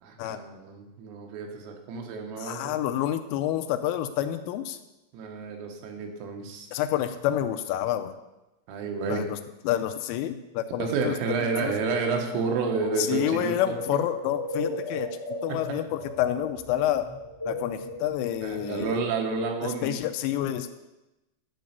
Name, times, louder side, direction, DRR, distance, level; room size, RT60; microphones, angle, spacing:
voice 1, 0.0-2.8 5.1-6.7 8.7-9.2 10.8-13.8 15.5-15.6 18.4-20.0, right 4 dB, 85° right, 2 dB, 4.0 m, -30 dB
voice 2, 2.4-4.8 6.7-8.2 9.1-9.4 9.6-11.7 13.0-17.1 17.5-19.0 19.6-20.7, left 12 dB, 85° left, 8 dB, 3.1 m, -29 dB
sound 1, 11.8-18.7, left 1 dB, 30° right, 0.3 m, -37 dB
11.5 x 5.3 x 8.1 m, 0.99 s
omnidirectional pair, 5.9 m